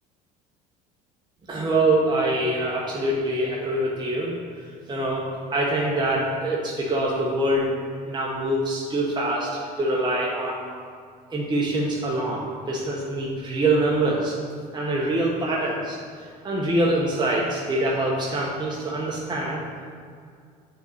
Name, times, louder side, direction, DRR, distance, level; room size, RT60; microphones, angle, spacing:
voice 1, 1.5-4.3 4.9-5.2 5.5-7.7 8.0-9.5 9.8-10.6 11.3-14.3 14.7-16.0 16.4-19.6, right 1 dB, 20° right, -4 dB, 1.2 m, -24 dB
6.9 x 4.0 x 6.5 m, 2.2 s
hypercardioid pair, 80°, 21 cm